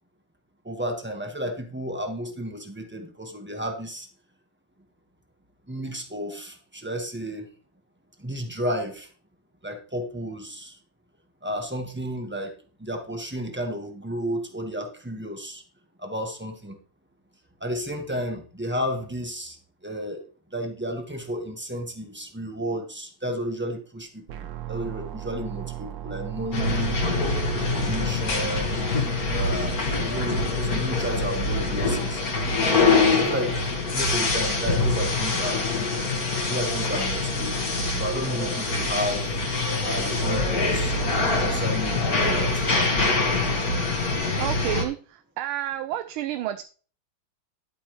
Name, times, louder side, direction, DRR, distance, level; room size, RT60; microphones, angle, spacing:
voice 1, 0.6-4.1 5.7-7.5 8.2-9.1 9.6-10.8 11.4-12.5 12.8-15.6 16.0-16.8 17.6-19.6 19.8-20.2 20.5-27.0 27.5-28.9 29.3-32.3 33.1-33.6 33.9-35.6 36.5-39.4 39.8-41.0 41.4-42.6, equal, 5° right, 4 dB, 1.2 m, -32 dB
sound 1, 24.3-28.3, right 14 dB, 75° right, 1.5 m, -35 dB
sound 2, 26.5-44.8, left 3 dB, 45° left, 2.2 m, -24 dB
voice 2, 44.4-46.6, right 13 dB, 90° right, 10 dB, 1.5 m, -30 dB
11.0 x 8.5 x 3.2 m, 0.39 s
omnidirectional pair, 2.2 m